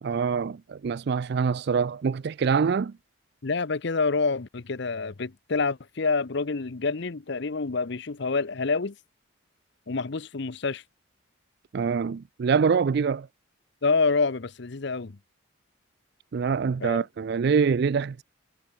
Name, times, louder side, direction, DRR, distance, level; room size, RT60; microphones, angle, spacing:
voice 1, 0.0-2.9 11.7-13.3 16.3-18.2, right 5 dB, 50° right, 0.4 m, -25 dB
voice 2, 3.4-8.9 9.9-10.8 13.8-15.2 16.8-17.0, left 4 dB, 55° left, 0.7 m, -27 dB
head